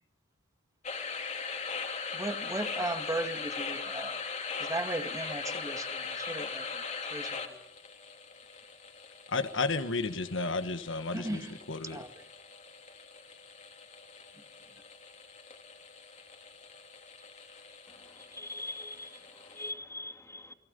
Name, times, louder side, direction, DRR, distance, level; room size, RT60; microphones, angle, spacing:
sound 1, 0.8-19.7, left 5 dB, 35° left, 3.2 m, -41 dB
voice 1, 2.1-4.2 4.6-7.6 11.1-12.2, right 2 dB, 15° right, 2.1 m, -37 dB
voice 2, 9.3-11.4 11.7-12.0, left 3 dB, 70° left, 1.5 m, -32 dB
voice 3, 17.9-20.5, left 2 dB, 15° left, 2.6 m, -43 dB
29.5 x 22.5 x 5.4 m
head